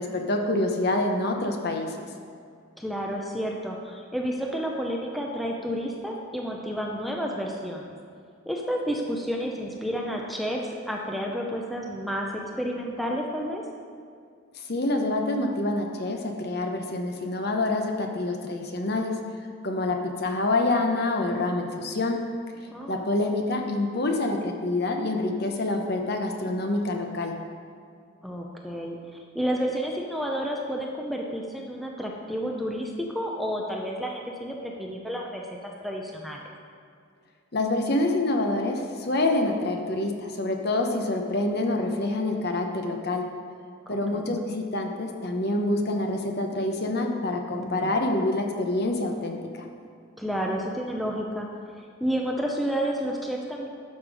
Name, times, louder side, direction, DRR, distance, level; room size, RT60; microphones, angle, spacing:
voice 1, 0.0-2.0 14.5-19.2 19.6-22.2 22.9-27.4 37.5-43.3 43.9-49.6, left 2 dB, 50° left, 3 dB, 0.9 m, -27 dB
voice 2, 2.8-7.9 8.5-13.6 22.7-23.0 28.2-36.5 43.9-44.4 47.5-47.9 50.2-51.5 51.8-53.7, equal, ahead, -1 dB, 0.6 m, -31 dB
11.5 x 5.9 x 4.8 m, 2.3 s
head